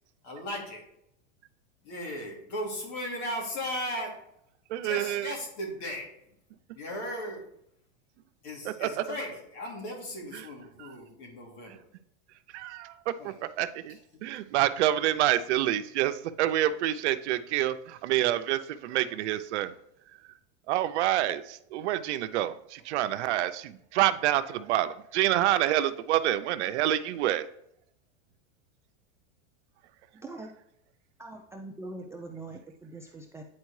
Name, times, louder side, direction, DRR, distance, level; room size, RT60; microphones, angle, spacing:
voice 1, 0.2-0.8 1.8-4.1 4.8-6.1 6.7-7.5 8.4-11.9 13.2-13.3 13.9-14.3, left 1 dB, 65° left, -1 dB, 2.8 m, -37 dB
voice 2, 4.7-5.3 8.8-8.9 10.8-10.9 12.5-19.7 20.7-27.5, right 13 dB, 75° right, 12 dB, 0.6 m, -27 dB
voice 3, 31.2-33.4, right 2 dB, 10° right, 1 dB, 0.3 m, -42 dB
9.5 x 4.4 x 3.1 m, 0.75 s
supercardioid pair, 130°, 34 cm